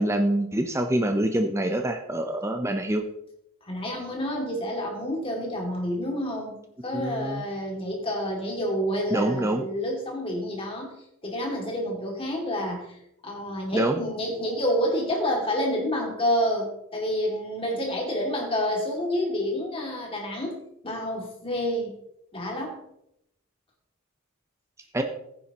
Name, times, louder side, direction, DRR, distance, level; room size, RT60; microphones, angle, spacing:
voice 1, 0.0-3.0 6.9-7.4 9.1-9.6 13.7-14.0 24.9-25.0, right 1 dB, 10° right, 5 dB, 0.7 m, -25 dB
voice 2, 3.6-6.6 6.8-10.9 11.2-12.9 13.2-20.6 20.8-21.9 22.3-22.8, equal, 25° left, 0 dB, 2.4 m, -28 dB
15.5 x 9.6 x 3.0 m, 0.77 s
head